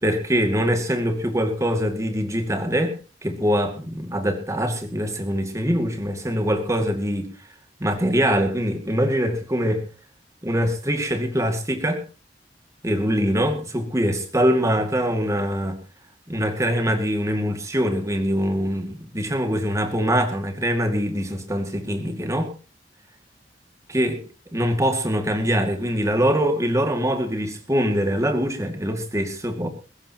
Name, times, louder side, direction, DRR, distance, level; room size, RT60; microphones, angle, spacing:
voice 1, 0.0-3.0 3.2-7.3 7.8-9.8 10.4-12.0 12.8-15.8 16.3-22.5 23.9-24.2 24.5-29.7, equal, 20° right, 2.2 m, -23 dB
21.0 x 16.0 x 3.0 m
head